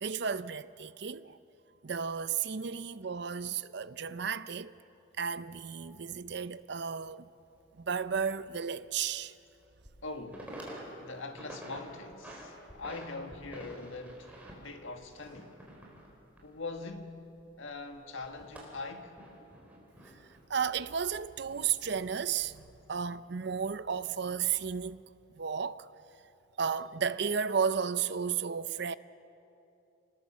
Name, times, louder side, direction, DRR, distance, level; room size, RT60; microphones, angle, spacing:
voice 1, 0.0-1.4 1.8-4.7 5.2-7.3 7.8-9.3 20.5-25.0 25.3-25.9 26.6-28.9, right 6 dB, 55° right, 0.5 m, -33 dB
sound 1, 6.1-6.2 8.4-8.5 9.0-9.1 9.6-10.0 10.3-10.8 11.2-11.8 12.1-13.1 13.3-17.3 17.5-20.4 21.1-22.0 22.4-22.7, equal, 5° right, 4.2 m, -49 dB
voice 2, 10.0-10.6 11.0-15.6 16.4-17.3 17.6-19.2, left 3 dB, 75° left, 1.7 m, -42 dB
27.0 x 20.0 x 7.4 m
head